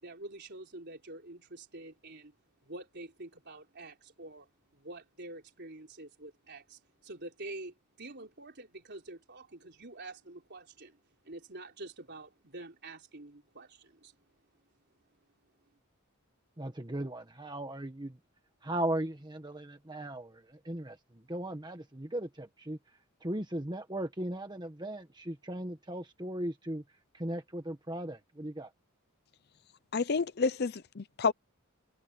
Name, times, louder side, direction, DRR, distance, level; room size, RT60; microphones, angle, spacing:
voice 1, 0.0-2.3 2.6-11.0 11.2-14.1, right 2 dB, 50° right, 4.0 m, -47 dB
voice 2, 16.6-18.2 18.6-21.0 21.3-22.8 23.2-26.8 27.1-28.7, right 1 dB, 20° right, 1.4 m, -37 dB
voice 3, 29.9-31.3, left 4 dB, 50° left, 0.6 m, -29 dB
head